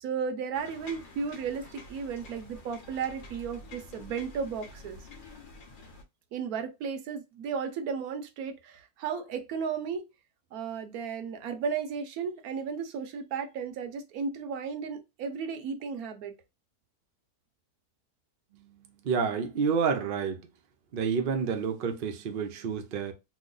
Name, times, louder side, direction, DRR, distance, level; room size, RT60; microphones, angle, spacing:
voice 1, 0.0-5.1 6.3-10.1 10.5-16.3, right 6 dB, 80° right, 1.1 m, -34 dB
sound 1, 0.5-6.0, left 2 dB, 50° left, 0.6 m, -48 dB
voice 2, 18.5-20.4 20.9-23.1, right 6 dB, 60° right, 0.6 m, -29 dB
3.0 x 2.1 x 3.8 m
omnidirectional pair, 1.6 m